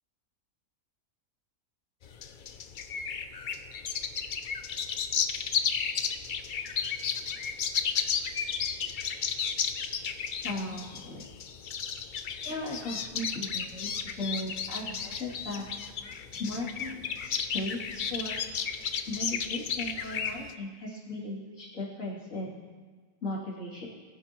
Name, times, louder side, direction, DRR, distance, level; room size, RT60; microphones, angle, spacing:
sound 1, 2.0-20.5, left 6 dB, 90° left, 0.4 m, -33 dB
voice 1, 10.4-11.2 12.4-15.7 16.3-18.4 19.1-22.6 23.2-23.9, left 1 dB, 55° left, -5 dB, 3.3 m, -37 dB
21.0 x 10.0 x 3.0 m, 1.4 s
omnidirectional pair, 1.6 m